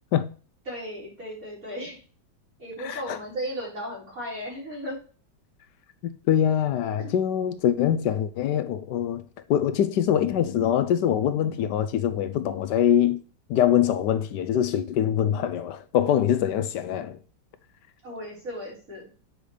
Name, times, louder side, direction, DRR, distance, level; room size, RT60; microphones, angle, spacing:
voice 1, 0.7-2.0 2.6-5.0 7.0-7.1 18.0-19.0, equal, 50° right, 4.7 m, -35 dB
voice 2, 2.8-3.2 6.3-9.2 9.5-13.2 13.5-17.2, left 10 dB, 75° left, 1.2 m, -23 dB
7.9 x 5.0 x 3.3 m
omnidirectional pair, 1.9 m